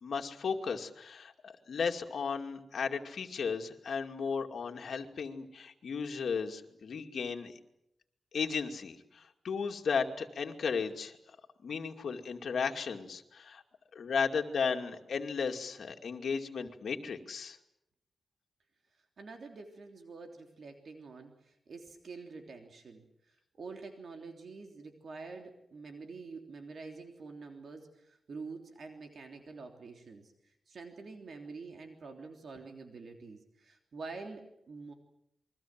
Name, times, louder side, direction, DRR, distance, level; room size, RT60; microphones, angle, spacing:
voice 1, 0.0-7.5 8.3-11.1 11.6-13.6 13.9-17.6, left 5 dB, 65° left, 4 dB, 2.5 m, -35 dB
voice 2, 19.2-30.3 30.7-34.9, right 4 dB, 55° right, 4 dB, 3.3 m, -47 dB
29.0 x 23.0 x 7.7 m, 0.80 s
wide cardioid pair, 155°, 0 cm